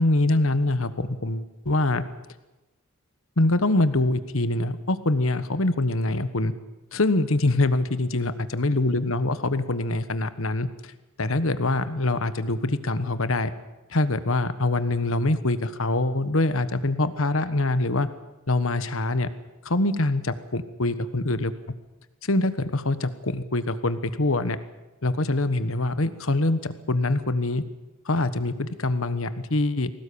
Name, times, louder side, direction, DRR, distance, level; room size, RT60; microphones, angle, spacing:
voice 1, 0.0-2.0 3.4-6.5 6.9-10.7 11.2-13.5 13.9-18.1 18.5-19.3 19.6-21.5 22.2-24.6 25.0-27.6 28.0-29.9, left 2 dB, 70° left, 12 dB, 1.3 m, -24 dB
21.5 x 18.0 x 8.6 m, 1.1 s
head